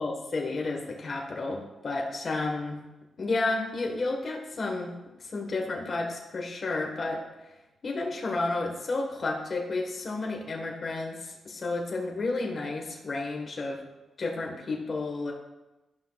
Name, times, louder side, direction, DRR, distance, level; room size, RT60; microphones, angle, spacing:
voice 1, 0.0-2.8 3.2-4.9 5.2-7.2 7.8-13.8 14.2-15.3, left 3 dB, 45° left, 0 dB, 1.3 m, -31 dB
12.0 x 5.8 x 2.3 m, 1.0 s
cardioid pair, 90°, 0 cm